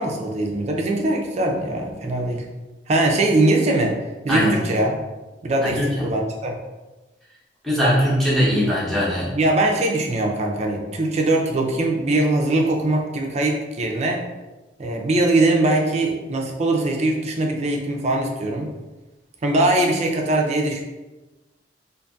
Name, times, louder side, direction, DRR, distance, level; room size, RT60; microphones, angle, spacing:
voice 1, 0.0-2.5 2.9-4.0 4.2-5.0 5.4-6.5 9.3-14.2 14.8-18.7 19.4-20.8, right 2 dB, 35° right, 1 dB, 0.4 m, -21 dB
voice 2, 5.6-6.1 7.6-9.3, equal, ahead, -9 dB, 0.8 m, -20 dB
2.5 x 2.5 x 2.3 m, 1.1 s
head